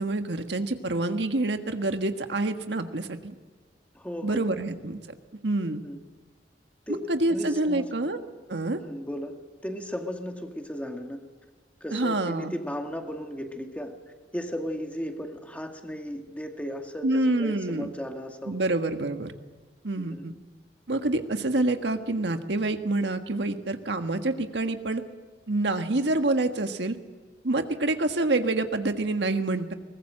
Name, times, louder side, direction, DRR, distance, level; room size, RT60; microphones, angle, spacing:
voice 1, 0.0-3.3 4.2-5.0 5.4-5.8 7.1-8.2 8.5-8.8 11.9-12.6 17.0-17.9 18.5-19.3 19.8-20.3 20.9-25.0 25.5-27.0 27.4-29.7, right 2 dB, 80° right, 7 dB, 1.5 m, -27 dB
voice 2, 3.9-4.4 5.7-6.0 6.9-8.1 8.7-9.3 9.6-11.2 11.8-14.0 14.3-18.5 20.0-20.3 27.7-27.8, equal, 10° left, 4 dB, 2.1 m, -36 dB
22.5 x 20.0 x 7.8 m, 1.4 s
head